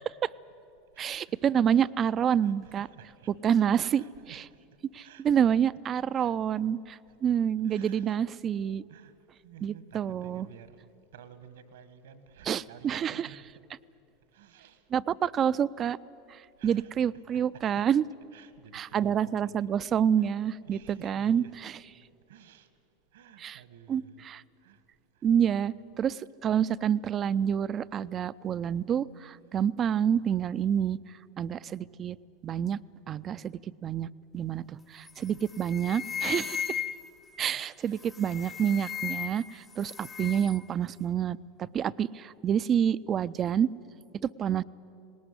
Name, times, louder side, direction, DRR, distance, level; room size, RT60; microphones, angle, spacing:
voice 1, 1.0-2.9 3.4-4.4 4.9-8.8 9.6-10.5 12.5-13.3 14.9-16.0 16.3-18.0 18.7-21.7 23.4-23.6 23.9-24.4 25.2-31.0 31.4-32.2 32.4-32.8 33.1-34.1 34.3-34.6 34.9-36.8 37.4-43.7 44.2-44.6, right 8 dB, 35° right, 17 dB, 0.5 m, -28 dB
voice 2, 1.7-2.0 2.4-3.3 3.9-4.6 5.0-5.5 6.1-6.3 7.2-7.3 7.6-8.2 8.9-9.1 9.4-13.6 14.3-14.8 16.6-16.9 17.5-17.8 18.3-19.6 20.2-20.3 20.6-21.5 22.3-22.7 23.1-24.2 24.6-24.8 35.2-35.6 37.4-38.0, right 8 dB, 75° right, 13 dB, 1.5 m, -53 dB
sound 1, 35.1-35.3 35.6-37.2 38.1-39.5 39.8-40.6, left 8 dB, 25° left, 0.7 m, -36 dB
19.0 x 19.0 x 9.7 m, 2.6 s
hypercardioid pair, 85°, 0 cm